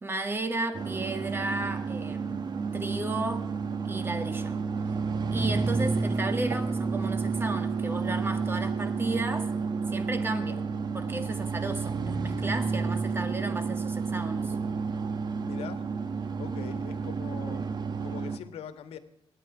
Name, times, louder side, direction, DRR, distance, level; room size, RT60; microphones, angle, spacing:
voice 1, 0.0-2.4 2.7-3.5 3.8-4.6 5.3-9.5 9.9-10.6 10.9-14.5, right 2 dB, 25° right, 1.8 m, -33 dB
sound 1, 0.7-18.4, right 4 dB, 45° right, 1.2 m, -30 dB
voice 2, 15.4-15.8 16.4-17.6 18.0-19.0, left 8 dB, 90° left, 1.3 m, -42 dB
25.5 x 9.9 x 4.9 m
cardioid pair, 125°, 10 cm